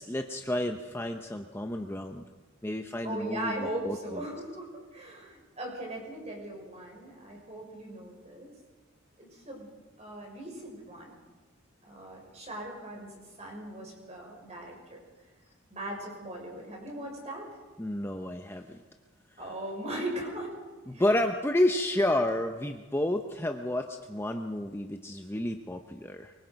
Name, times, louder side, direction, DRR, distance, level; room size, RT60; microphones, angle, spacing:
voice 1, 0.0-2.2 2.6-4.2 17.8-18.8 19.3-19.4 20.9-26.3, left 1 dB, 10° left, 5 dB, 0.8 m, -30 dB
voice 2, 3.0-8.5 9.2-9.7 10.0-11.1 11.9-15.0 15.7-17.5 19.4-20.6 20.9-21.0, right 1 dB, 30° right, 0 dB, 6.2 m, -39 dB
24.0 x 23.5 x 5.3 m, 1.3 s
head